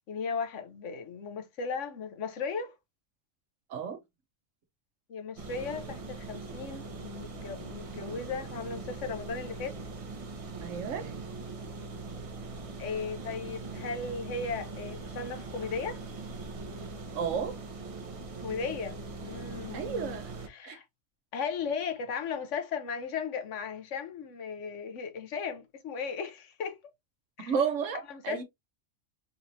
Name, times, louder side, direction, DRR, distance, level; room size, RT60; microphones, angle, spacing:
voice 1, 0.0-2.7 5.1-9.8 12.8-16.0 18.4-20.2 20.5-20.8 21.3-26.8 27.4-27.5 28.1-28.4, left 5 dB, 75° left, 1.1 m, -36 dB
sound 1, 5.4-20.5, right 3 dB, 35° right, 0.6 m, -41 dB
voice 2, 10.6-11.1 17.1-17.6 19.7-20.3 20.6-20.8 27.5-28.4, right 6 dB, 90° right, 1.2 m, -32 dB
3.9 x 3.1 x 2.6 m
omnidirectional pair, 1.3 m